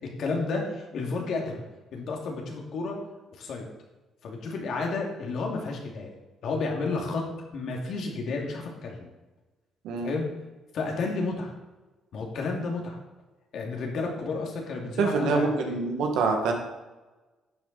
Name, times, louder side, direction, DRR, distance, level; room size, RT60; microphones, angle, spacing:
voice 1, 0.0-1.6 1.9-3.0 3.3-3.7 4.2-6.1 6.4-7.3 7.5-9.1 10.0-10.3 10.7-11.5 12.1-13.0 13.5-15.8, left 3 dB, 70° left, 1 dB, 2.5 m, -31 dB
voice 2, 15.0-16.5, right 4 dB, 80° right, 3 dB, 1.9 m, -25 dB
11.5 x 7.7 x 4.2 m, 1.2 s
supercardioid pair, 65°, 0 cm